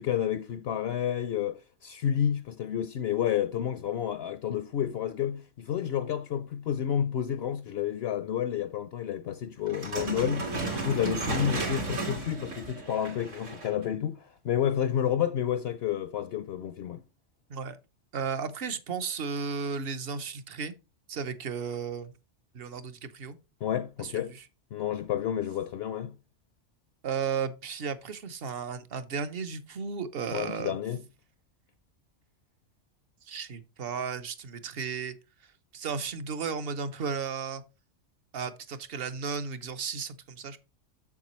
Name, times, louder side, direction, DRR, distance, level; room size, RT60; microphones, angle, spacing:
voice 1, 0.0-17.0 23.6-24.3 24.7-26.2 30.3-31.0, left 9 dB, 65° left, 0.7 m, -30 dB
sound 1, 9.7-13.8, right 2 dB, 75° right, 2.4 m, -34 dB
voice 2, 18.1-20.7 21.1-22.1 22.5-23.4 24.0-24.3 27.0-30.8 33.3-35.2 35.7-37.6 38.3-40.6, right 6 dB, 55° right, 0.9 m, -34 dB
7.4 x 7.2 x 3.0 m
omnidirectional pair, 1.3 m